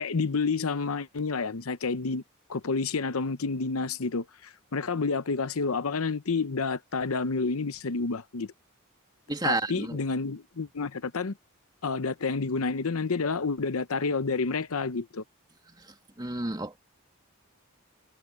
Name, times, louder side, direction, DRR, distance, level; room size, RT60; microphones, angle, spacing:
voice 1, 0.0-2.2 2.5-8.5 9.4-11.4 11.8-15.2, left 4 dB, 80° left, 0.8 m, -29 dB
voice 2, 9.3-10.0 15.8-16.8, right 2 dB, 20° right, 2.2 m, -31 dB
head